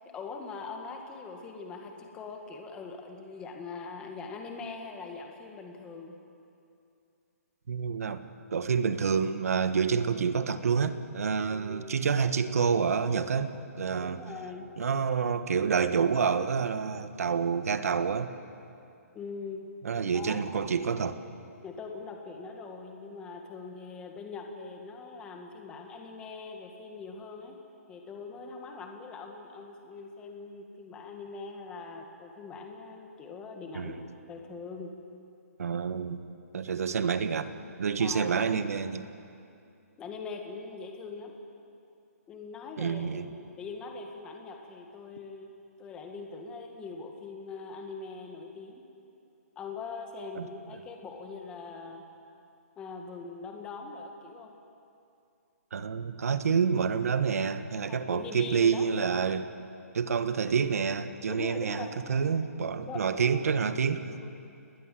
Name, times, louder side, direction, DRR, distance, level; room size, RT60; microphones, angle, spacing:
voice 1, 0.1-6.2 11.5-11.9 14.0-14.7 19.1-19.7 20.1-20.5 21.6-27.6 27.9-34.0 34.3-34.9 38.0-38.4 40.0-41.3 42.3-45.5 45.8-48.8 49.6-52.1 52.8-54.5 57.9-58.9 61.3-61.9 62.9-63.0 64.2-64.6, left 4 dB, 10° left, 2 dB, 1.8 m, -42 dB
voice 2, 7.7-14.2 14.8-18.3 19.8-21.2 33.7-34.0 35.6-36.2 36.5-37.5 37.8-39.1 42.8-43.3 50.3-50.5 55.7-59.5 59.9-64.1, right 6 dB, 65° right, 10 dB, 1.5 m, -28 dB
29.0 x 20.5 x 7.8 m, 2.6 s
hypercardioid pair, 170°, 9 cm